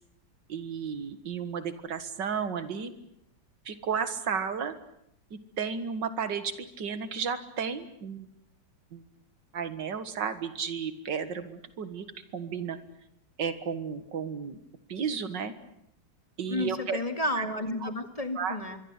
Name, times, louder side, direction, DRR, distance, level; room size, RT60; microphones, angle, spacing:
voice 1, 0.5-2.9 3.7-4.8 5.3-8.3 8.9-9.0 9.5-12.0 12.3-12.8 13.4-14.6 14.9-15.5 16.4-17.0 17.4-17.5 17.8-17.9 18.4-18.6, right 6 dB, 85° right, 11 dB, 2.3 m, -33 dB
voice 2, 16.5-18.8, left 1 dB, 20° left, 7 dB, 2.1 m, -32 dB
25.5 x 22.5 x 8.2 m, 0.77 s
omnidirectional pair, 1.9 m